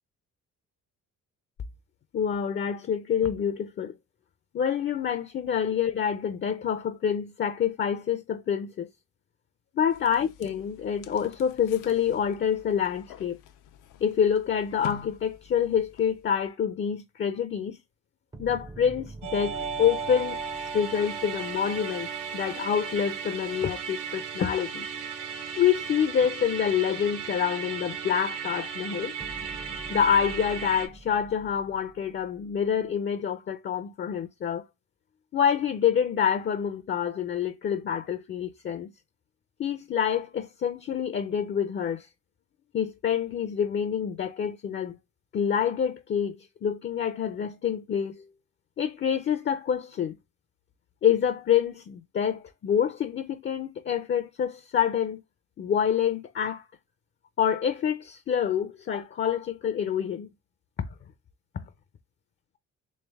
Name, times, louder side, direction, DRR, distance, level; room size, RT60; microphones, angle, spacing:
voice 1, 2.1-3.9 4.5-8.9 9.7-13.4 14.0-17.8 18.4-24.9 25.6-29.1 29.9-34.7 35.3-38.9 39.6-42.1 42.7-44.9 45.3-48.3 48.8-50.1 51.0-55.2 55.6-56.7 57.4-60.3 60.8-60.9, left 8 dB, 40° left, 0.5 m, -27 dB
sound 1, 9.9-16.5, left 11 dB, 85° left, 0.6 m, -47 dB
sound 2, 18.3-22.6 29.2-33.0, right 2 dB, 15° right, 0.5 m, -47 dB
Musical instrument, 19.2-30.9, right 6 dB, 85° right, 0.9 m, -35 dB
3.3 x 3.2 x 3.4 m
cardioid pair, 90°, 30 cm